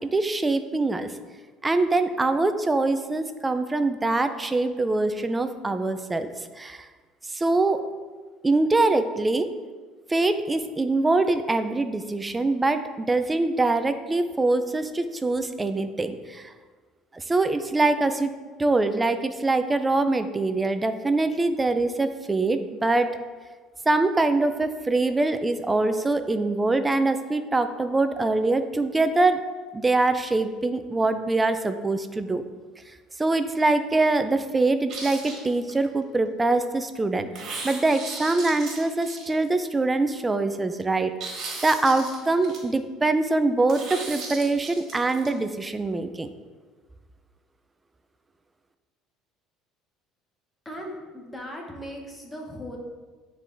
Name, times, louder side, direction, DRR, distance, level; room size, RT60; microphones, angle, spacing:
voice 1, 0.1-1.1 1.6-6.3 6.6-6.9 7.3-7.8 8.4-9.5 10.1-16.5 17.1-18.3 18.6-23.1 23.9-29.4 29.7-32.4 33.2-41.1 41.6-46.3, right 2 dB, 15° right, 9 dB, 0.4 m, -24 dB
sound 1, 34.9-35.9 37.3-39.6 41.2-42.6 43.7-45.3, right 3 dB, 50° right, 1.7 m, -36 dB
voice 2, 50.6-52.8, equal, 10° left, 0 dB, 1.2 m, -38 dB
9.6 x 3.8 x 3.4 m, 1.4 s
cardioid pair, 130°, 0 cm